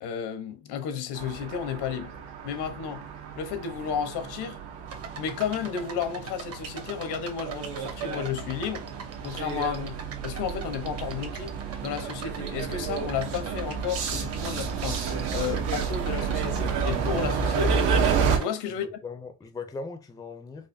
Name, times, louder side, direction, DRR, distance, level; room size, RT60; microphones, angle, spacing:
voice 1, 0.0-2.1 2.4-3.0 3.4-4.6 5.2-8.9 9.2-10.0 10.2-11.5 11.8-15.0 15.3-17.9 18.4-19.0, left 8 dB, 80° left, 1.0 m, -32 dB
sound 1, 1.1-18.4, right 6 dB, 80° right, 1.2 m, -30 dB
sound 2, 4.9-18.5, right 5 dB, 35° right, 0.9 m, -43 dB
voice 2, 18.7-20.7, left 4 dB, 10° left, 0.5 m, -39 dB
4.7 x 2.5 x 2.6 m
cardioid pair, 130°, 40 cm